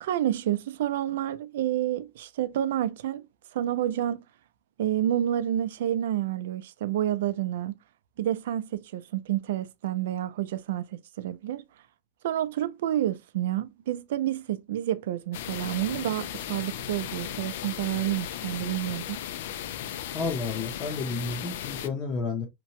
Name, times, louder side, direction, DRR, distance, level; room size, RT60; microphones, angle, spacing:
voice 1, 0.0-3.2 3.5-4.2 4.8-7.7 8.2-11.6 12.2-19.2, right 12 dB, 85° right, 0.3 m, -29 dB
sound 1, 15.3-21.9, left 10 dB, 70° left, 0.3 m, -36 dB
voice 2, 20.1-22.5, left 4 dB, 25° left, 0.5 m, -31 dB
2.8 x 2.1 x 2.8 m
supercardioid pair, 170°, 0 cm